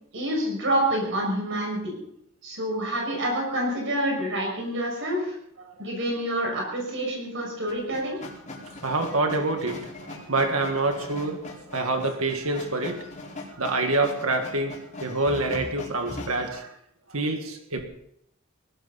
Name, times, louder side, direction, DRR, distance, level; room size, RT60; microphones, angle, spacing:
voice 1, 0.1-2.0 2.4-5.3 5.8-8.2, right 1 dB, 60° right, -1 dB, 5.9 m, -27 dB
sound 1, 7.7-16.5, left 2 dB, 35° left, 4.5 m, -40 dB
voice 2, 8.8-13.0 13.6-16.7 17.1-17.8, right 2 dB, 80° right, 4 dB, 1.8 m, -27 dB
20.5 x 17.0 x 4.1 m, 0.75 s
head